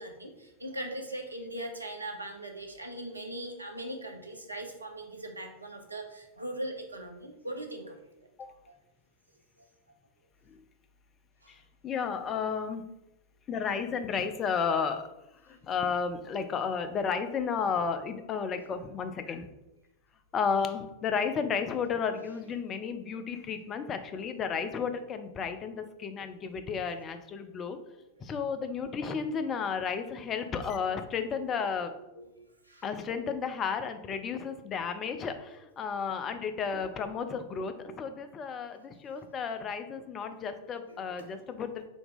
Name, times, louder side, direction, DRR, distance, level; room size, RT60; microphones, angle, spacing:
voice 1, 0.0-8.0 8.4-8.5 24.1-24.2 27.9-28.0 29.3-29.4 32.1-32.8 40.9-41.3, right 1 dB, 80° right, 3 dB, 0.6 m, -40 dB
voice 2, 11.5-12.8 13.5-15.1 15.4-19.5 20.3-27.8 28.2-31.9 32.8-41.9, left 6 dB, 25° left, 8 dB, 0.4 m, -33 dB
4.0 x 2.8 x 3.4 m, 0.92 s
figure-of-eight pair, 90°, 0 cm